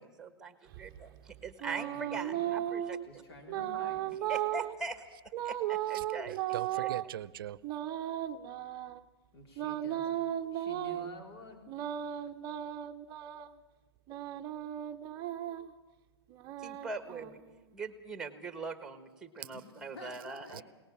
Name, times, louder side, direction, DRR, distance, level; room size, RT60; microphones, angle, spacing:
voice 1, 0.0-3.0 4.3-5.0 5.4-6.4 6.7-6.9 16.6-17.4 17.7-20.6, right 4 dB, 5° right, 10 dB, 1.4 m, -41 dB
sound 1, 0.7-3.0 3.5-4.7 5.3-7.1 7.6-9.0 9.6-11.1 11.7-13.5 14.1-15.7 16.3-17.7, right 12 dB, 25° right, 0.7 m, -36 dB
voice 2, 1.7-2.6 3.1-4.2 9.3-10.2 10.5-11.7 19.5-20.6, left 2 dB, 70° left, 3 dB, 3.9 m, -49 dB
voice 3, 5.9-7.6 19.4-19.5 20.5-20.6, right 11 dB, 55° right, 20 dB, 0.7 m, -41 dB
22.5 x 19.0 x 7.3 m, 1.2 s
hypercardioid pair, 150°, 14 cm